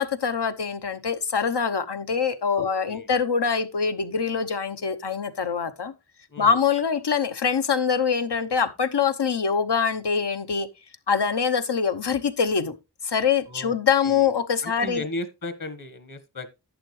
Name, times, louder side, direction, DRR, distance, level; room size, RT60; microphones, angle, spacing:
voice 1, 0.0-5.9 6.4-10.7 11.1-12.7 13.0-15.0, left 6 dB, 75° left, 0.9 m, -24 dB
voice 2, 2.6-3.1 6.3-6.6 13.5-13.7 14.0-14.3 14.6-16.5, left 2 dB, 50° left, 1.4 m, -36 dB
11.5 x 8.0 x 3.2 m
wide cardioid pair, 50°, 41 cm